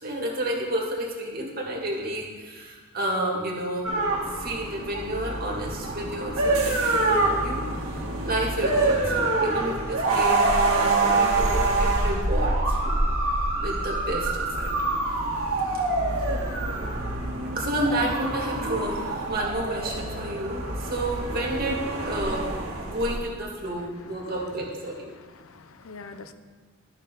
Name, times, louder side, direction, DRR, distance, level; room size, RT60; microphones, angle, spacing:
voice 1, 0.0-13.0 13.5-14.7 16.3-16.5 17.5-25.1, right 1 dB, 45° right, -3 dB, 2.0 m, -31 dB
sound 1, 3.8-23.2, right 2 dB, 75° right, 1.9 m, -26 dB
voice 2, 24.9-26.3, left 4 dB, 70° left, 9 dB, 0.6 m, -46 dB
12.0 x 6.3 x 3.8 m, 1.5 s
head